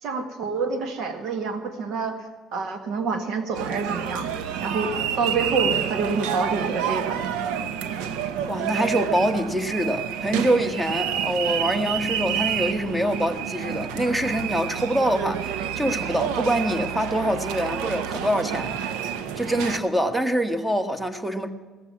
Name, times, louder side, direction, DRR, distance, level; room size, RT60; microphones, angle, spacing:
voice 1, 0.0-2.2 2.5-4.3 4.6-7.2, right 4 dB, 65° right, 1.7 m, -27 dB
sound 1, 3.5-19.8, right 9 dB, 90° right, 0.8 m, -29 dB
voice 2, 8.5-18.8 19.4-21.5, equal, 10° right, 1.3 m, -25 dB
16.5 x 7.3 x 9.5 m
cardioid pair, 100°, 0 cm